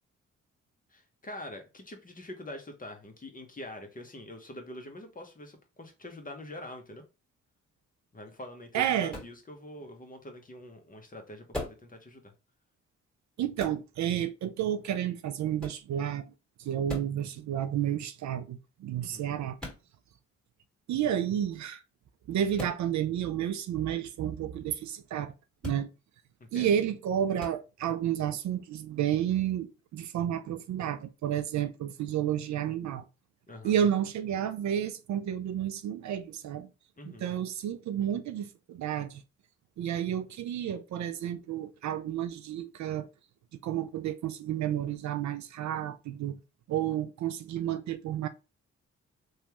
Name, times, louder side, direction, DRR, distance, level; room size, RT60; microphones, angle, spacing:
voice 1, 0.9-7.0 8.1-12.3 19.0-19.3 26.5-26.7 33.5-33.8 37.0-37.3, left 1 dB, 25° left, 0.9 m, -45 dB
voice 2, 8.7-9.1 13.4-16.3 16.6-19.6 20.9-21.8 22.3-25.3 25.6-25.9 26.5-33.0 33.6-36.7 37.1-39.2 39.8-43.1 43.6-46.4 46.7-48.3, right 10 dB, 65° right, 0.4 m, -31 dB
sound 1, 9.1-9.4 11.5-11.9 13.6-13.8 15.6-15.9 16.9-17.2 19.6-19.8 22.6-22.8 25.6-25.8 27.4-27.6, left 1 dB, 5° left, 1.9 m, -38 dB
3.1 x 2.3 x 2.9 m
supercardioid pair, 50°, 31 cm